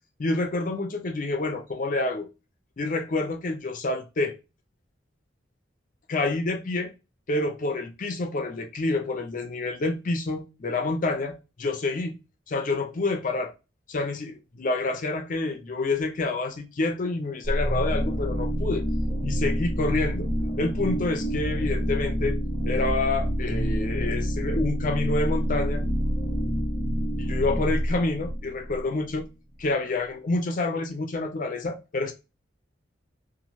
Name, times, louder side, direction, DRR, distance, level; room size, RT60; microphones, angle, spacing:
voice 1, 0.2-2.3 2.8-4.3 6.1-6.9 7.3-12.2 12.5-13.5 13.9-18.9 19.2-20.3 20.6-22.4 22.6-25.9 27.2-29.3 29.6-32.1, left 2 dB, 45° left, 0.5 m, -28 dB
sound 1, 17.4-29.2, equal, 5° right, 0.9 m, -27 dB
3.0 x 2.5 x 2.6 m
head